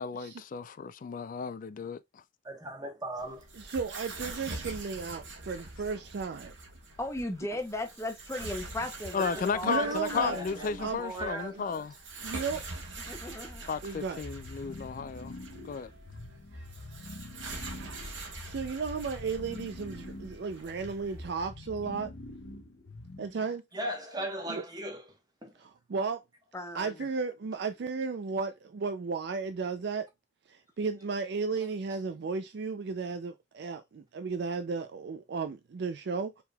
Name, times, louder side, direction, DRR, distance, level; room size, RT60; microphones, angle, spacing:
voice 1, 0.0-2.2 9.1-11.9 13.7-15.4 15.6-15.9, left 5 dB, 45° left, 0.3 m, -34 dB
voice 2, 2.4-3.4 9.2-11.8 23.7-25.0 25.4-25.5, right 1 dB, 20° right, 1.1 m, -37 dB
sound 1, 3.2-21.3, right 2 dB, 80° right, 1.3 m, -44 dB
voice 3, 3.5-6.5 9.6-11.0 11.5-11.6 12.2-12.6 13.8-14.2 17.8-22.1 23.2-23.6 24.5-24.6 25.6-26.2 26.7-30.1 30.5-36.4, right 4 dB, 60° right, 0.4 m, -34 dB
voice 4, 7.0-10.4 13.1-13.7 26.5-27.0, left 1 dB, 15° left, 0.7 m, -37 dB
sound 2, 14.2-23.4, left 2 dB, 70° left, 0.7 m, -46 dB
4.6 x 3.4 x 2.3 m
head